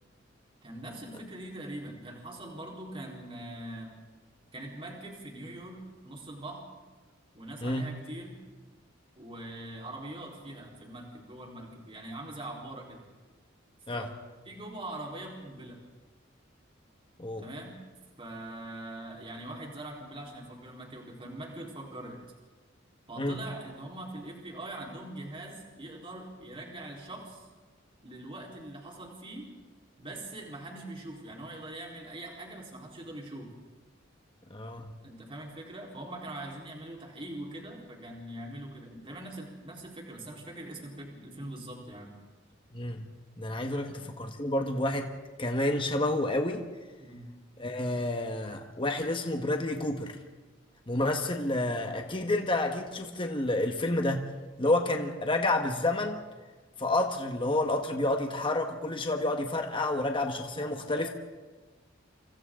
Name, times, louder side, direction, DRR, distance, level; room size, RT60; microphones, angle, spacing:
voice 1, 0.6-3.9 4.5-6.6 7.3-8.4 9.1-13.0 13.9-14.1 14.4-15.8 17.4-17.8 18.2-22.2 23.1-27.5 28.0-29.5 30.0-33.5 35.0-42.1 43.7-44.0 47.0-47.3 60.6-61.1, right 1 dB, 30° right, -1 dB, 4.1 m, -42 dB
voice 2, 7.6-7.9 13.9-14.0 17.2-17.4 23.2-23.4 34.5-34.9 42.7-43.1 43.4-45.1 45.4-46.6 47.6-50.2 50.9-54.3 54.6-56.2 56.8-61.1, left 2 dB, 25° left, 4 dB, 1.5 m, -29 dB
29.0 x 26.5 x 3.9 m, 1.3 s
head